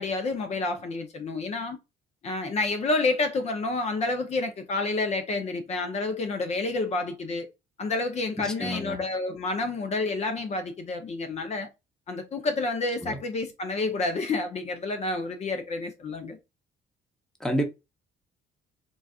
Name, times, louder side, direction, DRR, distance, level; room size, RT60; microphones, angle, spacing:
voice 1, 0.0-1.8 2.2-7.5 7.8-11.7 12.1-16.4, left 3 dB, 40° left, 0.6 m, -29 dB
voice 2, 8.4-9.0 13.0-13.2 17.4-17.6, equal, 5° left, 0.7 m, -29 dB
3.9 x 2.3 x 2.4 m
cardioid pair, 110°, 17 cm